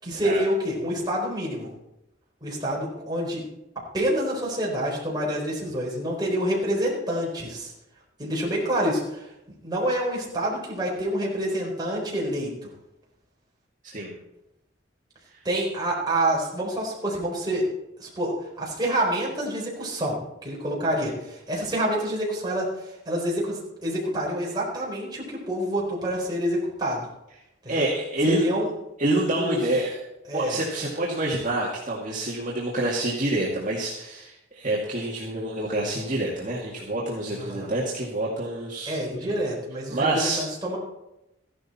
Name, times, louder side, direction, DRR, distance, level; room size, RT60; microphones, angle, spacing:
voice 1, 0.0-1.7 2.4-3.4 3.9-7.7 8.2-9.2 9.6-12.7 15.4-17.7 18.0-22.7 23.1-27.1 27.6-27.9 28.3-28.7 29.3-29.6 30.3-30.6 37.3-37.7 38.8-40.8, right 1 dB, 20° right, -3 dB, 4.1 m, -27 dB
voice 2, 27.7-28.5 29.0-30.0 30.3-39.0 39.2-39.3 39.9-40.4, right 1 dB, 40° right, -5 dB, 2.1 m, -27 dB
14.5 x 11.5 x 4.3 m, 0.90 s
head